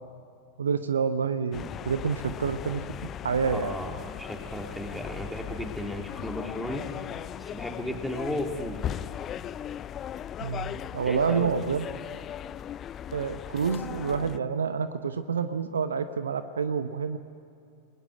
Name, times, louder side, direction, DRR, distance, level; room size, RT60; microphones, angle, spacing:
voice 1, 0.6-2.8 3.2-3.8 10.4-11.9 13.1-17.2, right 6 dB, 70° right, 11 dB, 0.9 m, -28 dB
sound 1, 1.5-14.4, left 10 dB, 30° left, 0.5 m, -38 dB
voice 2, 3.5-8.8 11.1-11.7 13.9-14.2, equal, ahead, 1 dB, 3.3 m, -35 dB
29.5 x 20.0 x 7.7 m, 2.5 s
figure-of-eight pair, 90°, 0 cm